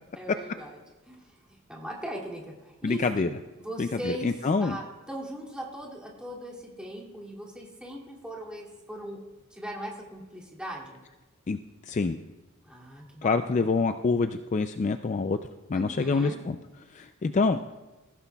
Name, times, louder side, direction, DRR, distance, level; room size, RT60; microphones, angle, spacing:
voice 1, 0.2-0.8 1.0-3.3 3.6-9.2 9.5-11.0 12.6-13.3 13.6-13.7 15.7-16.4, right 1 dB, 5° right, -4 dB, 2.5 m, -39 dB
voice 2, 2.8-3.3 3.8-4.8 11.5-11.6 11.9-12.2 13.2-15.4 15.7-16.6 16.9-17.6, left 4 dB, 35° left, 8 dB, 0.3 m, -26 dB
19.0 x 15.5 x 2.3 m, 1.1 s
head